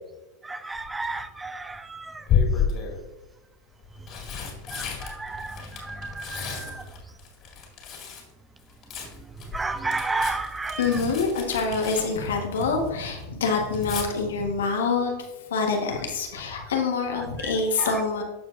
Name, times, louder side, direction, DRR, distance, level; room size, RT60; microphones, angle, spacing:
voice 1, 0.4-2.2 4.7-6.8 9.5-10.8 17.8-17.9, right 3 dB, 15° right, 12 dB, 0.4 m, -32 dB
Tearing, 0.8-1.2 2.3-3.0 3.8-8.3 8.6-12.9 13.2-14.1 15.9-16.2 16.5-16.6, left 7 dB, 45° left, 2.3 m, -31 dB
voice 2, 10.8-15.1 15.5-18.2, left 4 dB, 85° left, 2 dB, 1.4 m, -26 dB
13.0 x 4.6 x 2.6 m, 1.1 s
hypercardioid pair, 105°, 0 cm